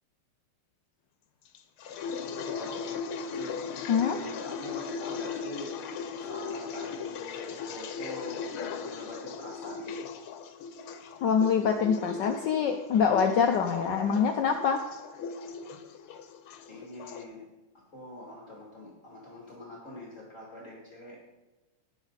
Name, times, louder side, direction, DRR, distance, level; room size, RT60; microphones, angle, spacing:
sound 1, 1.5-17.2, left 5 dB, 85° left, 1.8 m, -38 dB
voice 1, 2.3-3.1 3.3-3.6 4.2-5.7 6.1-8.5 8.8-10.1 16.7-17.5 17.9-21.2, left 1 dB, 35° left, -3 dB, 2.6 m, -44 dB
voice 2, 3.9-4.2 11.2-14.8, left 6 dB, 65° left, 4 dB, 1.3 m, -25 dB
18.0 x 6.2 x 4.0 m, 1.2 s
omnidirectional pair, 2.3 m